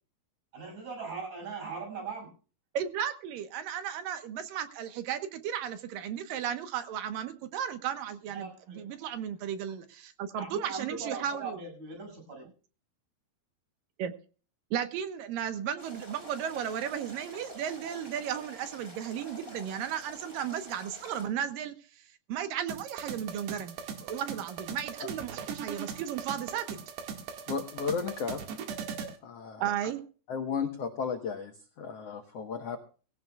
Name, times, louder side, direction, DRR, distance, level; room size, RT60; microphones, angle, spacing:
voice 1, 0.5-2.3 8.3-9.1 10.3-12.5, right 4 dB, 45° right, 8.0 m, -40 dB
voice 2, 2.7-11.6 14.0-14.1 14.7-23.8 24.0-26.8 29.6-30.0, right 9 dB, 70° right, 2.5 m, -35 dB
sound 1, 15.8-21.3, equal, 15° right, 5.0 m, -48 dB
sound 2, 22.7-29.2, right 7 dB, 90° right, 4.0 m, -40 dB
voice 3, 27.5-28.4 28.9-29.9 30.3-32.8, left 6 dB, 75° left, 1.4 m, -34 dB
20.0 x 16.5 x 2.3 m
omnidirectional pair, 4.6 m